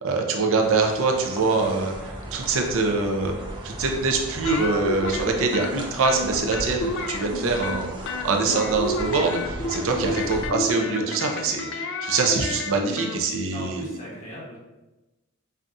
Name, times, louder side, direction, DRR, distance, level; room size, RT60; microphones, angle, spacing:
voice 1, 0.0-1.9 2.3-3.3 3.6-9.4 9.7-13.9, right 3 dB, 65° right, 3 dB, 0.6 m, -24 dB
sound 1, 0.6-10.5, right 1 dB, 20° right, 0.5 m, -37 dB
sound 2, 4.4-5.7 6.0-7.8 8.1-13.2, left 2 dB, 55° left, 0.4 m, -30 dB
voice 2, 13.5-14.6, equal, 35° left, -5 dB, 1.1 m, -38 dB
5.5 x 2.3 x 2.6 m, 1.0 s
head